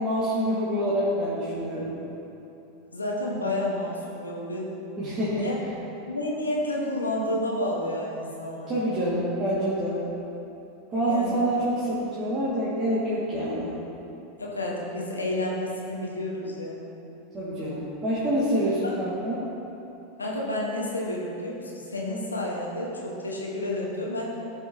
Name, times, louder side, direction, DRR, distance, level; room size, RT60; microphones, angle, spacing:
voice 1, 0.0-1.9 5.0-5.5 8.7-10.0 10.9-13.7 17.3-19.4, equal, 30° right, -10 dB, 1.9 m, -26 dB
voice 2, 2.9-4.7 5.4-5.5 6.1-9.0 11.1-11.4 14.4-16.8 18.8-18.9 20.2-24.4, left 1 dB, 90° left, -2 dB, 1.2 m, -30 dB
14.0 x 5.6 x 2.8 m, 3.0 s
figure-of-eight pair, 85°, 0 cm